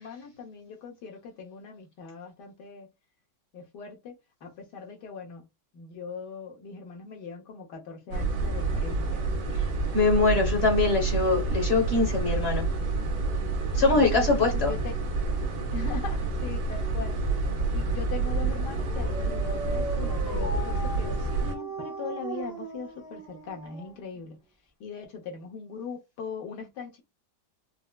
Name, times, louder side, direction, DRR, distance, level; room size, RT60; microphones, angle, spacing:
voice 1, 0.0-2.9 3.5-5.4 5.7-9.2 10.3-10.9 13.9-14.9 15.7-24.4 24.8-27.0, left 5 dB, 70° left, 1.4 m, -40 dB
sound 1, 8.1-21.5, right 3 dB, 75° right, 1.4 m, -28 dB
voice 2, 9.9-12.7 13.7-14.7, left 3 dB, 40° left, 1.1 m, -23 dB
Dog, 18.6-24.3, right 2 dB, 5° right, 0.8 m, -38 dB
4.6 x 2.0 x 2.2 m
omnidirectional pair, 1.9 m